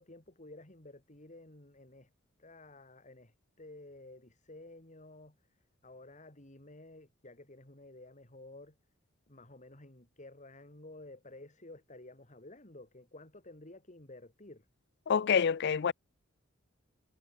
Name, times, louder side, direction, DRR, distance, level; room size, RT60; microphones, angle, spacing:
voice 1, 0.0-2.1 2.4-5.4 5.8-8.8 9.3-14.7, left 2 dB, 40° left, 3.7 m, -52 dB
voice 2, 15.1-15.9, left 6 dB, 60° left, 0.5 m, -27 dB
head